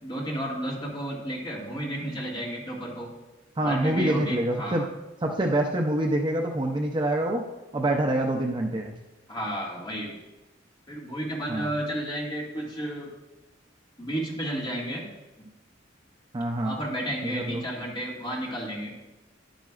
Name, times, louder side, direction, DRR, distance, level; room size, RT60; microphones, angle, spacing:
voice 1, 0.0-3.1 3.6-4.9 9.3-10.2 10.9-13.1 14.0-15.1 15.4-15.5 16.6-18.9, right 1 dB, 25° left, -3 dB, 1.9 m, -32 dB
voice 2, 3.6-4.9 5.2-7.5 7.7-8.9 11.5-11.7 16.3-16.8 17.2-17.6, right 1 dB, 25° right, 2 dB, 0.5 m, -26 dB
10.5 x 9.1 x 2.4 m, 1.1 s
head